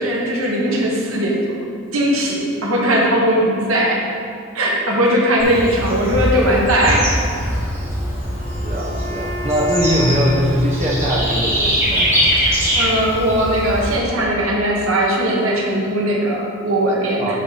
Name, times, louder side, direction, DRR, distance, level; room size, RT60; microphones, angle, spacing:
voice 1, 0.0-1.6 1.9-4.0 4.5-7.2 12.7-17.4, right 1 dB, 85° right, -2 dB, 1.5 m, -18 dB
Bird / Insect, 5.4-14.0, equal, 15° right, 1.8 m, -22 dB
Wind instrument woodwind instrument, 7.7-11.8, left 1 dB, 15° left, 1.9 m, -34 dB
voice 2, 8.6-12.3 17.2-17.4, equal, 30° right, -3 dB, 1.0 m, -21 dB
11.5 x 4.9 x 4.2 m, 2.3 s
head